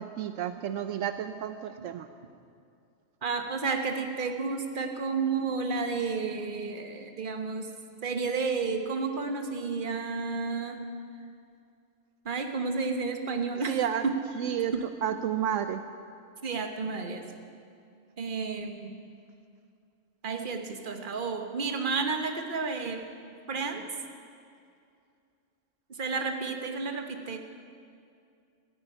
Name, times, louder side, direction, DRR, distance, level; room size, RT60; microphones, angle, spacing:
voice 1, 0.0-2.1 13.7-14.0 14.3-14.7 15.0-15.8, right 10 dB, 75° right, 10 dB, 0.9 m, -31 dB
voice 2, 3.2-7.7 8.0-10.8 12.2-13.8 14.0-14.1 14.7-14.8 16.4-17.2 18.2-19.0 20.2-23.0 23.5-23.8 26.0-27.4, right 4 dB, 40° right, 6 dB, 1.3 m, -31 dB
13.5 x 9.7 x 9.9 m, 2.4 s
omnidirectional pair, 1.3 m